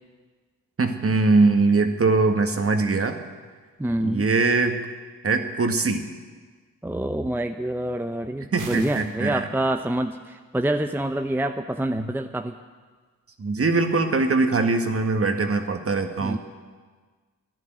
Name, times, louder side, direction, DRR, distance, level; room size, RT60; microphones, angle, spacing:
voice 1, 0.8-3.2 4.0-4.8 5.2-6.1 8.5-9.5 11.9-12.1 13.4-16.4, right 3 dB, 40° right, 6 dB, 1.8 m, -22 dB
voice 2, 3.8-4.3 6.8-12.5 16.2-16.4, right 1 dB, 5° right, 7 dB, 0.7 m, -26 dB
sound 1, 8.6-9.2, right 5 dB, 60° right, 1.8 m, -40 dB
12.5 x 10.5 x 9.1 m, 1.4 s
supercardioid pair, 50°, 36 cm